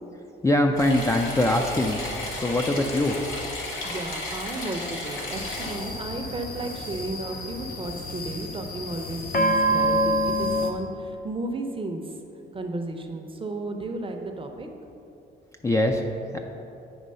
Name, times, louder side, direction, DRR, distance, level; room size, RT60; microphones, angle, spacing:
voice 1, 0.4-3.2 15.6-16.0 16.3-16.4, left 1 dB, 15° left, 2 dB, 0.4 m, -23 dB
sound 1, 0.8-5.7, left 2 dB, 85° left, 1.4 m, -33 dB
voice 2, 3.8-12.0 12.5-14.7, right 2 dB, 25° right, 4 dB, 0.7 m, -33 dB
sound 2, 5.3-10.7, equal, 50° left, 0.7 m, -27 dB
8.7 x 3.0 x 5.4 m, 2.7 s
cardioid pair, 90°, 20 cm